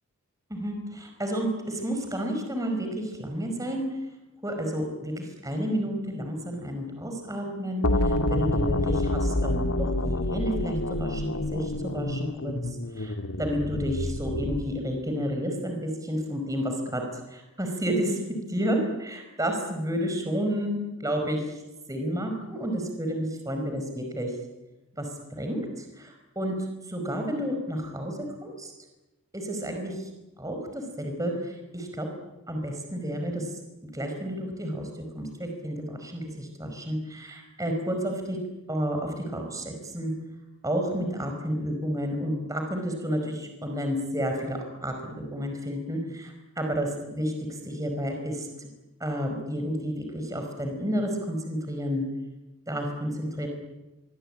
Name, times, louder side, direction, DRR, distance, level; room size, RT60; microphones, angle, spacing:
voice 1, 0.5-3.9 4.4-18.2 18.5-20.7 21.0-21.5 21.9-24.3 25.0-26.5 26.9-28.7 29.3-30.1 30.4-32.1 32.5-33.6 33.9-34.9 35.1-38.4 38.7-40.1 40.6-48.7 49.0-52.0 52.7-53.5, equal, 15° right, 4 dB, 4.9 m, -31 dB
sound 1, 7.8-14.7, left 1 dB, 85° left, 1.9 m, -28 dB
25.0 x 23.5 x 8.9 m, 1.0 s
head